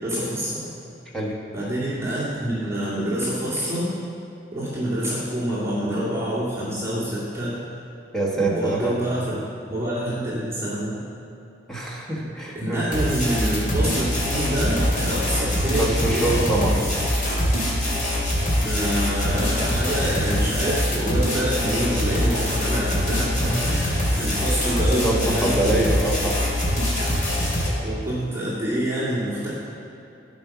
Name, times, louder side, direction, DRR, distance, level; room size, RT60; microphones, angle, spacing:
voice 1, 0.0-0.7 1.5-3.9 4.5-7.6 8.3-9.3 9.7-11.0 12.5-16.8 18.6-25.8 27.8-29.5, equal, 15° right, -10 dB, 2.3 m, -26 dB
voice 2, 8.1-9.0 11.7-12.8 15.8-16.7 25.0-26.5, right 2 dB, 5° left, -4 dB, 1.6 m, -25 dB
sound 1, 12.9-27.7, equal, 45° left, 2.5 m, -23 dB
13.0 x 5.3 x 6.0 m, 2.8 s
head